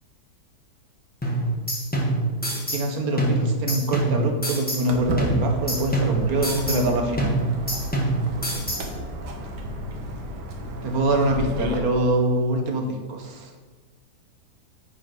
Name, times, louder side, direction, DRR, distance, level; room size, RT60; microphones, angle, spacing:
sound 1, 1.2-2.9 3.2-4.9 5.2-6.9 7.2-8.9, right 2 dB, 5° left, 1.1 m, -25 dB
voice 1, 2.7-7.4 10.8-13.5, right 1 dB, 65° right, 3 dB, 1.4 m, -24 dB
Walk footsteps, 4.9-11.8, equal, 80° right, 1.7 m, -32 dB
9.8 x 4.4 x 4.7 m, 1.4 s
omnidirectional pair, 1.8 m